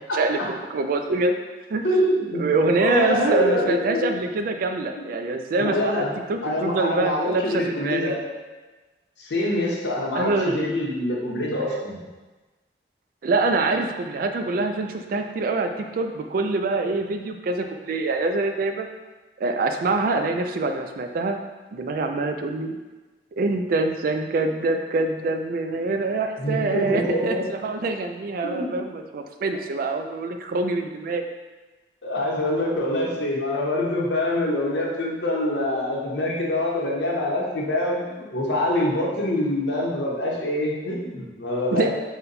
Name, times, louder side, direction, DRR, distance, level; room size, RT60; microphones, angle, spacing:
voice 1, 0.1-1.3 1.7-1.8 2.3-8.1 10.1-10.6 13.2-18.9 19.4-21.4 21.7-22.8 23.4-31.2 41.7-41.9, right 3 dB, 55° right, 6 dB, 0.3 m, -25 dB
voice 2, 1.8-2.5 2.8-4.1 5.0-5.1 5.6-6.2 6.4-8.2 9.2-12.0 26.4-27.4 28.4-28.7 32.0-41.9, left 1 dB, 80° left, -4 dB, 0.9 m, -25 dB
4.1 x 2.2 x 3.9 m, 1.2 s
head